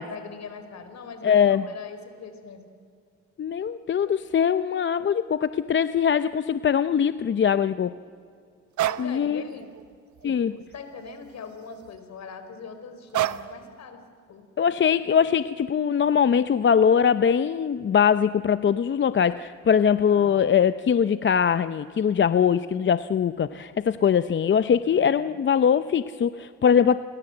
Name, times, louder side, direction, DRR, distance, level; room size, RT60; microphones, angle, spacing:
voice 1, 0.0-2.6 8.9-9.7 10.2-14.0 14.3-14.4 20.1-20.6 24.6-25.4, left 5 dB, 60° left, 8 dB, 4.4 m, -42 dB
voice 2, 1.2-1.7 3.4-7.9 9.0-9.4 10.2-10.5 14.6-27.0, left 7 dB, 40° left, 12 dB, 0.7 m, -22 dB
sound 1, 8.8-9.1 9.6-9.8 10.2-11.2 11.6-12.0 13.1-13.6, right 13 dB, 70° right, 1.0 m, -29 dB
29.5 x 22.5 x 7.9 m, 2.3 s
cardioid pair, 90°, 30 cm